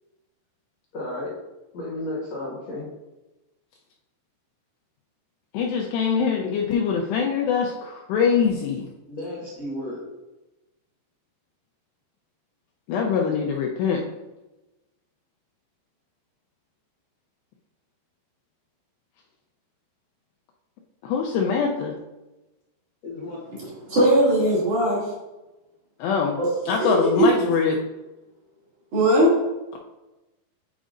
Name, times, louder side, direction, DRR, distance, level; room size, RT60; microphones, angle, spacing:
voice 1, 0.9-1.4 1.7-2.9 9.1-10.0 23.0-23.4, left 1 dB, 65° left, -6 dB, 1.7 m, -33 dB
voice 2, 5.5-8.9 12.9-14.0 21.0-22.0 26.0-26.4 26.7-27.8, left 6 dB, 85° left, 0 dB, 2.4 m, -23 dB
voice 3, 23.8-25.0 26.4-26.5 26.8-27.3 28.9-29.3, equal, 45° right, -9 dB, 3.4 m, -19 dB
9.1 x 5.1 x 2.5 m, 1.0 s
omnidirectional pair, 5.4 m